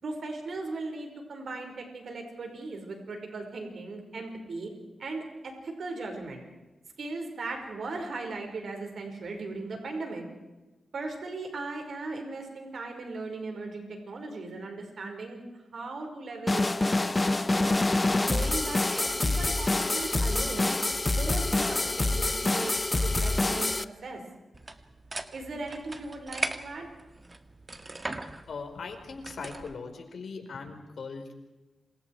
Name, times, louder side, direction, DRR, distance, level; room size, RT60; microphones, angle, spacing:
voice 1, 0.0-4.7 5.0-6.4 7.0-10.2 10.9-15.4 15.7-17.8 18.2-20.7 21.2-23.7 24.0-24.2 25.3-26.9, right 3 dB, 70° right, 3 dB, 5.3 m, -38 dB
sound 1, 16.5-23.8, left 2 dB, 25° left, 0.9 m, -26 dB
sound 2, 24.5-29.7, right 2 dB, 30° right, 1.9 m, -39 dB
voice 2, 28.5-31.3, left 4 dB, 75° left, 5 dB, 4.6 m, -40 dB
29.5 x 27.0 x 4.8 m, 1.1 s
cardioid pair, 75°, 0 cm